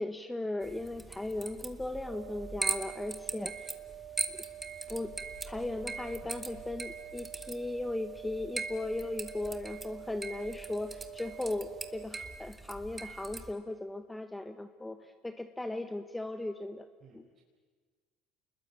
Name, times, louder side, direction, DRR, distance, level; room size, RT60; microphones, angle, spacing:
voice 1, 0.0-3.5 4.3-4.4 4.9-5.1 5.4-16.9 17.1-17.2, left 2 dB, 10° left, 8 dB, 1.3 m, -37 dB
sound 1, 0.6-13.5, right 3 dB, 20° right, 2.2 m, -41 dB
sound 2, 2.1-12.1, right 11 dB, 65° right, 2.8 m, -47 dB
voice 2, 3.2-3.5 17.0-17.4, right 6 dB, 45° right, -2 dB, 4.8 m, -61 dB
sound 3, 4.7-10.7, left 7 dB, 50° left, 3.2 m, -56 dB
29.0 x 21.0 x 8.8 m, 1.5 s
hypercardioid pair, 75°, 0 cm